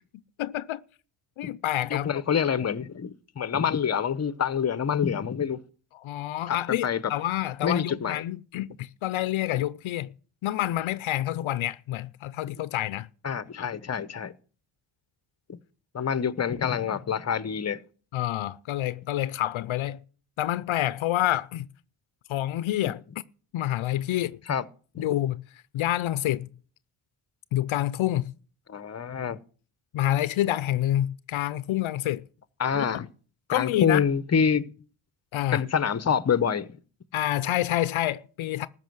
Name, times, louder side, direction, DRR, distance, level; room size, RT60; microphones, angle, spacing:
voice 1, 0.4-0.8 1.4-2.2 5.9-10.1 10.4-13.1 13.5-13.6 18.1-20.0 20.4-21.7 22.3-23.0 23.5-24.4 25.0-25.4 25.7-26.5 27.5-28.3 29.9-32.2 32.7-33.1 33.5-34.1 35.3-35.6 37.1-38.7, left 13 dB, 70° left, 0.6 m, -28 dB
voice 2, 1.9-5.6 6.5-7.0 7.6-8.2 13.2-14.3 15.5-15.6 15.9-17.8 22.8-22.9 24.5-24.6 24.9-25.2 28.7-29.4 32.6-33.0 33.5-34.7 35.5-36.8, left 7 dB, 30° left, 0.8 m, -26 dB
14.5 x 5.5 x 7.8 m
cardioid pair, 70°, 49 cm